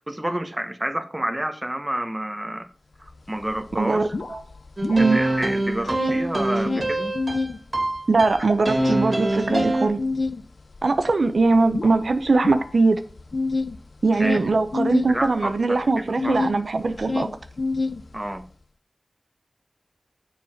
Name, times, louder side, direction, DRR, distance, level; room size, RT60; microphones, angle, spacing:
voice 1, 0.1-2.7 3.0-4.2 5.0-7.1 14.2-14.4 15.1-16.4 18.1-18.4, right 1 dB, 20° right, 1.0 m, -29 dB
sound 1, 3.1-3.2 3.4-5.4 5.7-7.6 8.0-16.6 16.9-18.4, left 3 dB, 80° left, 0.5 m, -28 dB
voice 2, 3.8-4.4 4.9-5.2 8.1-10.0 10.8-13.0 14.0-17.3, right 3 dB, 85° right, 0.7 m, -21 dB
sound 2, 4.8-9.9, right 2 dB, 55° right, 2.2 m, -25 dB
7.1 x 4.8 x 5.6 m
wide cardioid pair, 65°, 0 cm